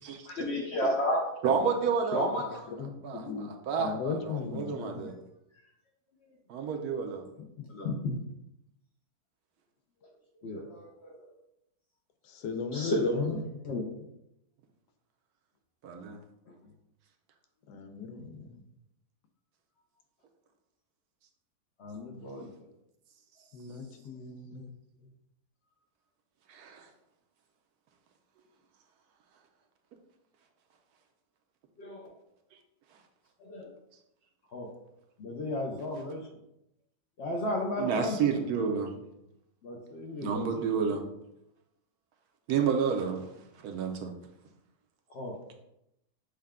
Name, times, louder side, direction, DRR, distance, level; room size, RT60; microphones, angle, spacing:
voice 1, 0.3-1.2 2.1-2.9 3.2-3.3 4.4-4.6 7.7-8.2 10.4-11.2 12.7-14.0 16.5-16.6 18.4-18.5 21.8-22.5 24.2-24.3 31.8-32.1 33.4-33.7 34.5-34.7 35.2-36.3 37.2-38.4 39.6-40.6 45.1-45.4, left 1 dB, 60° left, 0 dB, 0.7 m, -33 dB
voice 2, 1.4-2.3 3.0-5.1 6.5-7.2 15.8-16.2 26.5-26.9 37.8-38.9 40.2-41.0 42.5-43.2 43.6-44.1, right 6 dB, 75° right, 4 dB, 1.1 m, -30 dB
voice 3, 2.8-3.5 3.8-5.1 7.4-7.7 12.2-13.4 17.7-18.5 23.5-24.7, left 5 dB, 85° left, 6 dB, 1.1 m, -37 dB
6.5 x 2.2 x 3.5 m, 0.83 s
omnidirectional pair, 1.7 m